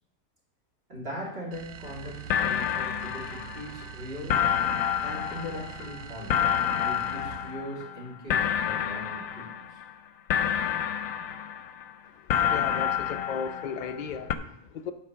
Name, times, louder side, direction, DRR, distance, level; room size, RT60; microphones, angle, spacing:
voice 1, 0.9-4.5 5.0-6.4 6.8-9.8, equal, 40° right, -4 dB, 3.2 m, -40 dB
sound 1, 1.5-7.6, right 10 dB, 65° right, 0.5 m, -44 dB
sound 2, 1.9-2.0 2.3-3.9 4.3-8.0 8.3-9.9 10.3-11.9 12.3-14.0 14.3-14.4, left 9 dB, 70° left, 1.0 m, -29 dB
voice 2, 12.2-14.9, left 6 dB, 55° left, 7 dB, 0.5 m, -36 dB
9.9 x 4.3 x 6.2 m, 0.74 s
omnidirectional pair, 1.5 m